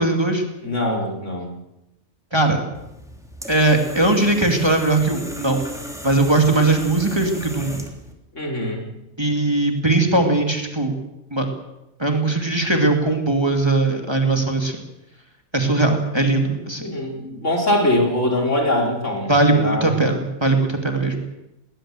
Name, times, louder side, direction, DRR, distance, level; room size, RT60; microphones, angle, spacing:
voice 1, 0.0-0.4 2.3-2.6 3.5-5.6 6.0-7.8 9.2-10.9 11.3-11.5 12.0-14.8 15.5-16.8 19.3-21.2, right 2 dB, 20° right, 3 dB, 2.7 m, -19 dB
voice 2, 0.6-1.5 8.3-8.8 16.8-19.9, left 1 dB, 65° left, 1 dB, 4.9 m, -22 dB
sound 1, 2.7-8.1, equal, ahead, 3.1 m, -35 dB
20.5 x 20.0 x 7.7 m, 0.90 s
omnidirectional pair, 1.4 m